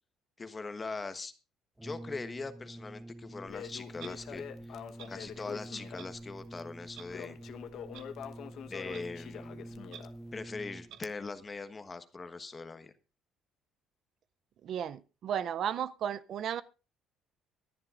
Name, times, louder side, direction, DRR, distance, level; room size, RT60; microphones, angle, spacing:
voice 1, 0.4-1.3 1.8-4.7 5.1-7.4 8.7-9.7 10.3-12.9, left 3 dB, 20° left, 1.2 m, -41 dB
Brass instrument, 1.8-11.1, right 1 dB, 5° right, 0.5 m, -47 dB
Crackle, 3.5-10.4, left 8 dB, 60° left, 1.1 m, -46 dB
Clock, 4.0-4.1 5.0-5.1 6.0-6.1 6.9-7.1 7.9-8.0 8.9-9.0 9.9-10.0 10.9-11.0, right 10 dB, 70° right, 1.2 m, -47 dB
voice 2, 14.6-16.6, right 9 dB, 55° right, 0.5 m, -34 dB
24.0 x 11.0 x 2.5 m
cardioid pair, 125°, 0 cm